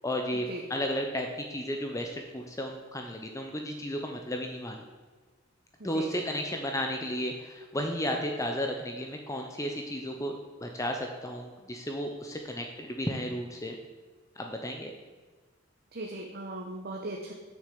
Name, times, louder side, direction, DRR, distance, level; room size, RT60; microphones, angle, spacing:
voice 1, 0.0-4.9 5.8-10.3 10.6-13.8 14.4-14.9, equal, 15° left, 3 dB, 0.7 m, -33 dB
voice 2, 5.8-6.2 15.9-17.3, right 1 dB, 50° right, 0 dB, 1.0 m, -38 dB
7.0 x 6.4 x 7.7 m, 1.4 s
head